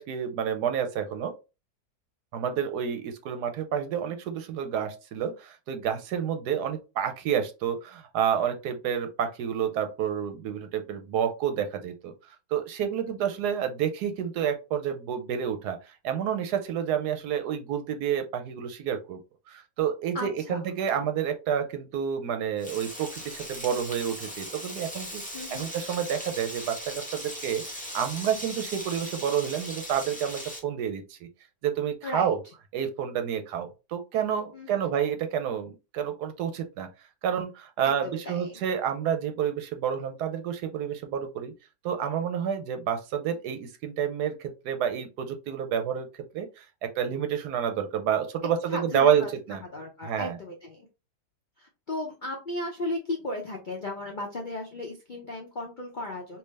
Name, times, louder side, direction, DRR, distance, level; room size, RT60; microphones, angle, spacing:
voice 1, 0.0-1.3 2.3-19.2 19.5-25.2 25.5-31.3 31.6-32.4 32.7-36.9 37.2-41.5 41.8-46.1 46.3-49.6 50.0-50.4, right 8 dB, 70° right, 7 dB, 1.1 m, -29 dB
voice 2, 20.1-20.6 25.3-25.7 32.0-32.3 34.5-34.9 37.8-38.6 48.7-49.3 49.7-50.9 51.6-56.4, left 2 dB, 60° left, 0 dB, 0.5 m, -35 dB
Frying (food), 22.6-30.6, equal, 10° left, 0.6 m, -39 dB
3.4 x 2.7 x 3.2 m, 0.29 s
omnidirectional pair, 1.9 m